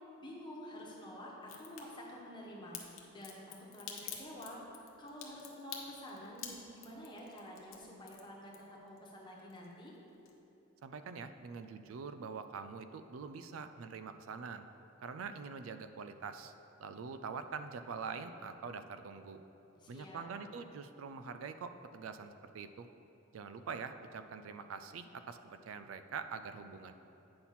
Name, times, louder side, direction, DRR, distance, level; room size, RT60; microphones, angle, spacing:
voice 1, 0.2-4.6 5.0-9.9 19.8-20.2, equal, 25° left, -3 dB, 1.1 m, -49 dB
Crack, 1.4-1.8 2.7-9.0 9.3-10.0 10.3-10.4, left 9 dB, 90° left, 0.9 m, -47 dB
voice 2, 10.8-14.7 15.0-16.5 16.8-19.4 19.9-22.9 23.3-26.9, right 5 dB, 85° right, 10 dB, 0.4 m, -44 dB
8.5 x 5.8 x 4.2 m, 3.0 s
head